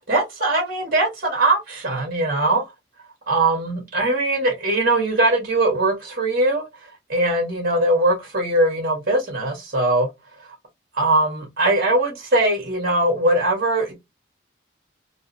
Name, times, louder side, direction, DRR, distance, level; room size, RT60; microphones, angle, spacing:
voice 1, 0.1-2.7 3.3-10.1 10.9-13.9, right 2 dB, 45° right, 1.8 m, -21 dB
3.7 x 2.1 x 4.0 m
head